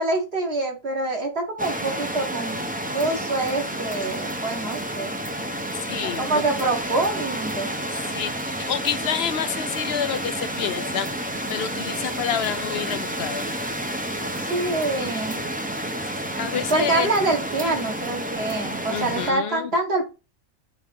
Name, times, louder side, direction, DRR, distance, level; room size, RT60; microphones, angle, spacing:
voice 1, 0.0-2.6 2.9-5.2 6.0-7.7 14.4-15.4 16.7-20.0, right 2 dB, 50° right, 1.9 m, -25 dB
sound 1, 1.6-19.3, right 1 dB, 10° right, 0.6 m, -30 dB
voice 2, 5.9-6.2 8.1-13.5 16.4-17.1 18.9-19.7, left 8 dB, 60° left, 0.8 m, -28 dB
8.3 x 3.6 x 3.5 m
omnidirectional pair, 1.3 m